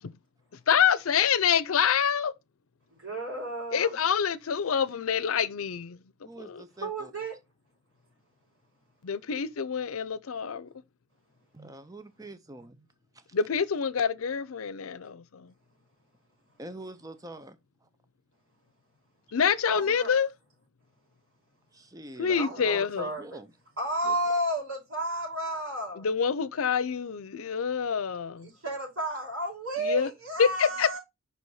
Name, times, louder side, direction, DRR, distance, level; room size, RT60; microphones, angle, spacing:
voice 1, 0.7-2.3 3.7-6.0 6.4-6.6 9.0-10.7 13.3-15.5 19.3-20.3 22.2-23.1 26.0-28.5 29.8-30.1 30.4-31.0, left 7 dB, 85° left, 0.6 m, -26 dB
voice 2, 2.9-3.9 6.8-7.4 19.7-20.1 22.3-23.4 23.8-26.1 28.4-31.0, right 1 dB, 75° right, 4.7 m, -32 dB
voice 3, 6.2-7.1 11.5-12.9 13.1-13.3 16.6-17.6 17.8-17.9 21.7-23.5 24.0-24.2, right 1 dB, 15° right, 0.7 m, -45 dB
5.6 x 4.2 x 4.7 m
head